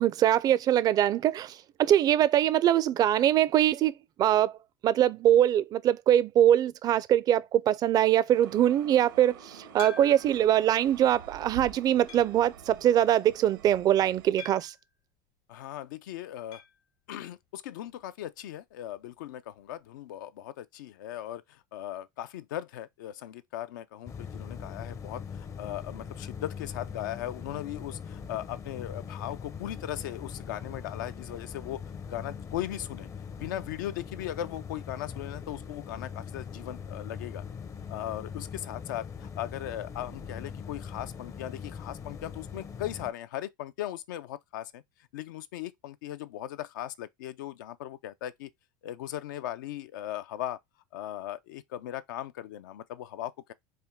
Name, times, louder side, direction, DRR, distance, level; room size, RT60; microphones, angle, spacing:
voice 1, 0.0-4.6 4.8-14.7, right 11 dB, 40° right, 0.4 m, -23 dB
sound 1, 8.3-14.3, right 7 dB, 90° right, 0.9 m, -47 dB
sound 2, 9.8-10.5 11.1-11.2 12.1-12.5 14.4-14.9 16.5-16.8 17.1-17.2 17.4-17.5 19.5-19.6, left 6 dB, 65° left, 1.1 m, -45 dB
voice 2, 15.5-16.6 17.1-31.8 32.1-33.1 33.4-37.4 37.9-44.8 45.1-48.5 48.8-50.6 50.9-53.5, left 12 dB, 80° left, 0.4 m, -38 dB
sound 3, 24.1-43.1, left 6 dB, 30° left, 0.5 m, -41 dB
4.3 x 2.2 x 3.5 m
hypercardioid pair, 95°, 10 cm